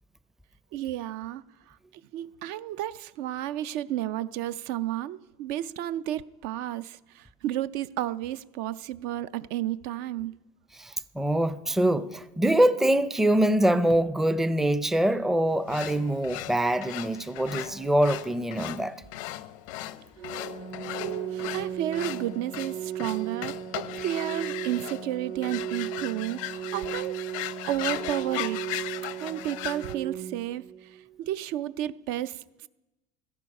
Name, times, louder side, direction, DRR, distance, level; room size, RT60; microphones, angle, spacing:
voice 1, 0.7-1.8 2.1-10.3 21.0-27.2 27.6-28.6 29.2-32.7, right 13 dB, 70° right, 0.5 m, -32 dB
voice 2, 10.8-19.0, right 1 dB, ahead, 0.5 m, -24 dB
sound 1, 15.7-29.9, left 15 dB, 85° left, 0.6 m, -38 dB
Organ, 20.2-31.2, right 10 dB, 45° right, 0.9 m, -36 dB
17.0 x 14.0 x 5.3 m
supercardioid pair, 130°, 16 cm